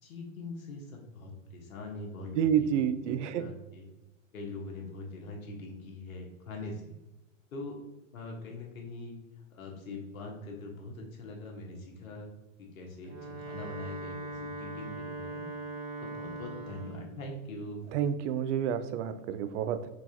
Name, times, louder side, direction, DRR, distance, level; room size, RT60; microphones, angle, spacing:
voice 1, 0.0-2.7 3.0-3.9 4.3-7.0 7.5-7.8 8.1-9.2 9.5-12.3 12.6-15.4 16.0-17.8, left 2 dB, 80° left, 0 dB, 1.4 m, -42 dB
voice 2, 2.3-3.5 17.9-19.9, right 9 dB, 60° right, 12 dB, 0.5 m, -29 dB
Wind instrument woodwind instrument, 12.9-17.1, right 2 dB, 85° right, 1.2 m, -40 dB
4.7 x 3.8 x 2.8 m, 1.0 s
hypercardioid pair, 105°, 41 cm